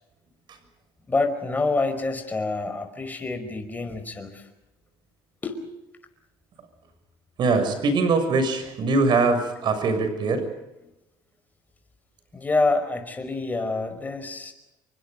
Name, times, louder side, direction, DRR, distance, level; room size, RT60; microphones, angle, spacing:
voice 1, 1.1-4.5 5.4-5.6 12.3-14.5, left 3 dB, 15° left, 7 dB, 5.2 m, -27 dB
voice 2, 7.4-10.5, right 3 dB, 50° right, 8 dB, 6.9 m, -22 dB
29.5 x 24.0 x 5.3 m, 0.93 s
cardioid pair, 115°, 10 cm